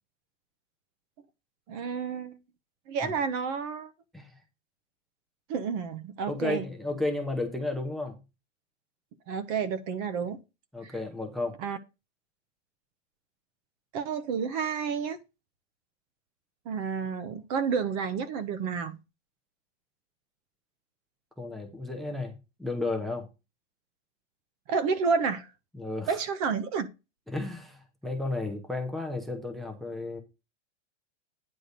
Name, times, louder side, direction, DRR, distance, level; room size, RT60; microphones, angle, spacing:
voice 1, 1.7-2.4 2.9-3.9 5.5-6.6 9.3-10.4 10.8-10.9 11.6-11.8 13.9-15.2 16.7-19.0 24.7-25.5 26.1-26.9, right 6 dB, 30° right, 0.8 m, -30 dB
voice 2, 6.3-8.2 10.7-11.6 21.4-23.3 25.7-26.2 27.3-30.2, left 2 dB, ahead, 0.7 m, -33 dB
9.7 x 3.9 x 6.6 m
supercardioid pair, 160°, 37 cm